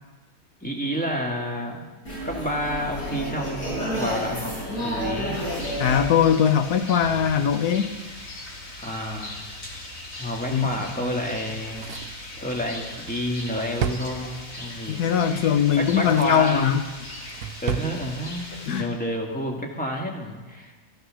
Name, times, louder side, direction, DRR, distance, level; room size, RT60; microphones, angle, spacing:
voice 1, 0.6-1.9 2.2-4.5 4.8-5.3 8.8-9.4 10.2-11.9 12.4-15.6 15.9-16.8 17.6-18.5 18.8-20.7, equal, 5° left, 0 dB, 1.9 m, -29 dB
sound 1, 2.0-7.2, equal, 70° left, 6.7 m, -30 dB
Rain, 5.3-18.8, left 1 dB, 45° left, 2.3 m, -39 dB
voice 2, 5.8-7.9 10.5-10.7 11.0-11.2 14.9-16.9 18.7-18.9, left 8 dB, 85° left, 8 dB, 1.5 m, -21 dB
Drawer open or close, 11.4-14.7 15.6-16.5 16.9-17.9 18.2-18.3, right 9 dB, 80° right, 1.2 m, -34 dB
14.5 x 13.5 x 6.4 m, 1.3 s
omnidirectional pair, 1.6 m